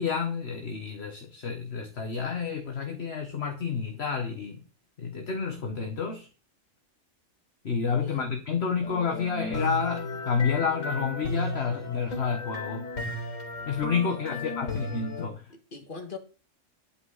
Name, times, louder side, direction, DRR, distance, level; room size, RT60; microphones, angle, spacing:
voice 1, 0.0-4.6 5.0-6.3 7.6-13.2 13.7-15.5, left 6 dB, 55° left, 1.4 m, -30 dB
sound 1, 8.8-15.3, left 2 dB, 80° left, 3.8 m, -34 dB
voice 2, 14.1-14.6 15.5-16.2, left 4 dB, 40° left, 2.0 m, -42 dB
11.5 x 8.6 x 4.0 m
omnidirectional pair, 1.3 m